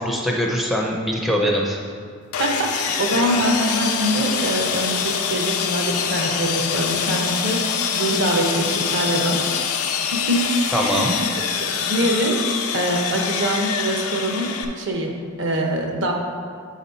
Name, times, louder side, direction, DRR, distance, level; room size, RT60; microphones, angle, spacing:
voice 1, 0.0-1.8 3.1-3.2 10.7-11.4, equal, ahead, -2 dB, 0.5 m, -23 dB
Sawing, 2.3-14.6, left 7 dB, 85° left, 0.6 m, -25 dB
voice 2, 2.4-7.6 7.9-9.4 10.1-10.4 10.8-11.3 11.6-14.5 14.7-16.1, right 1 dB, 60° right, 1 dB, 0.9 m, -24 dB
8.3 x 4.1 x 4.1 m, 2.1 s
head